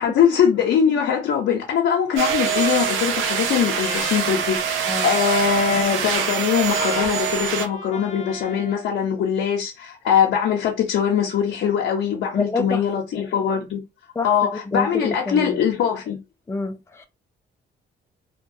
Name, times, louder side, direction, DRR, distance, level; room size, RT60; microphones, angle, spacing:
voice 1, 0.0-13.8 14.2-16.2, left 8 dB, 70° left, 0.7 m, -22 dB
Trumpet, 2.1-8.8, left 4 dB, 35° left, 0.8 m, -35 dB
sound 1, 2.2-7.7, right 8 dB, 85° right, 0.6 m, -24 dB
voice 2, 12.3-13.0 14.2-15.6 16.5-17.1, left 3 dB, 15° left, 0.4 m, -28 dB
2.2 x 2.2 x 2.7 m
cardioid pair, 90°, 20 cm